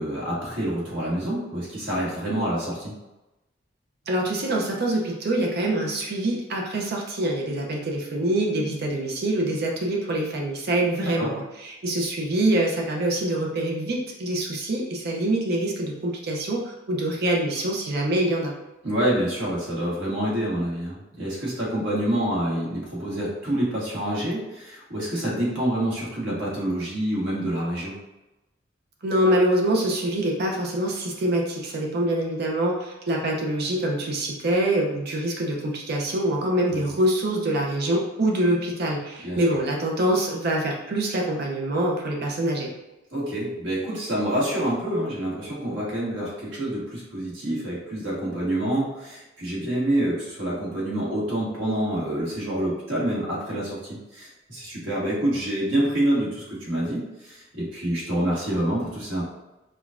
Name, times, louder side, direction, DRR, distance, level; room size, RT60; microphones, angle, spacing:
voice 1, 0.0-2.9 11.2-11.3 18.8-27.9 36.7-36.8 39.2-39.4 43.1-59.2, right 1 dB, 80° right, -6 dB, 1.5 m, -27 dB
voice 2, 4.1-18.5 29.0-42.7, right 1 dB, 55° right, -1 dB, 0.6 m, -25 dB
5.0 x 2.3 x 2.4 m, 1.0 s
head